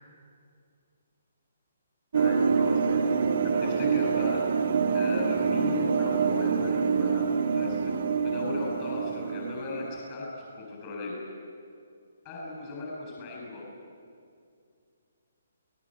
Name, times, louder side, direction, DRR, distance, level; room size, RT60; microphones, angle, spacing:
voice 1, 2.1-4.4 4.9-11.2 12.2-13.6, left 3 dB, 30° left, -3 dB, 7.8 m, -37 dB
sound 1, 2.1-10.1, right 5 dB, 60° right, 2.3 m, -26 dB
29.5 x 19.0 x 7.9 m, 2.4 s
figure-of-eight pair, 140°, 0 cm